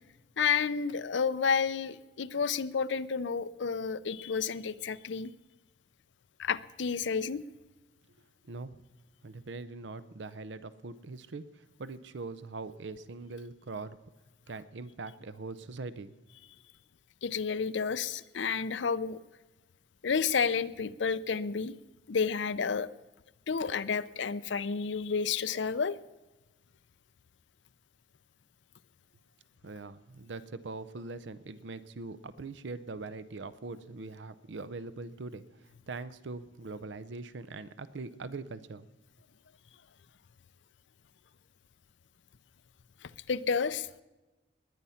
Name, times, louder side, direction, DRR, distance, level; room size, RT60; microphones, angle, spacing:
voice 1, 0.4-5.3 6.4-7.4 17.2-19.2 20.0-21.7 22.1-22.9 23.5-26.0 43.0-43.9, left 6 dB, 70° left, 14 dB, 0.6 m, -30 dB
voice 2, 8.4-8.8 9.2-14.0 14.5-16.1 29.6-38.8, right 3 dB, 70° right, 15 dB, 0.6 m, -42 dB
20.0 x 9.8 x 5.7 m, 1.1 s
head